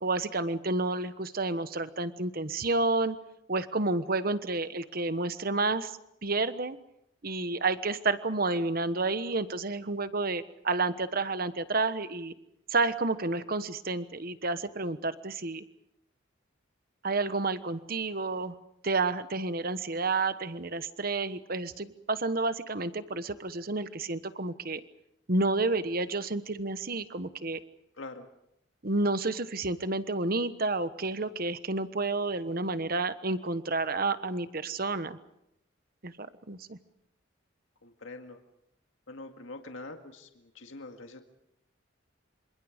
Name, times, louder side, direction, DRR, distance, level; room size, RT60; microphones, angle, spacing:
voice 1, 0.0-3.2 3.5-6.8 7.2-12.3 12.7-15.6 17.0-18.6 18.8-24.8 25.3-27.6 28.8-35.2 36.0-36.8, right 3 dB, 45° right, 12 dB, 1.2 m, -30 dB
voice 2, 28.0-28.3 37.8-38.4 39.1-41.2, left 2 dB, 75° left, 5 dB, 2.0 m, -44 dB
27.5 x 26.0 x 5.2 m, 0.82 s
head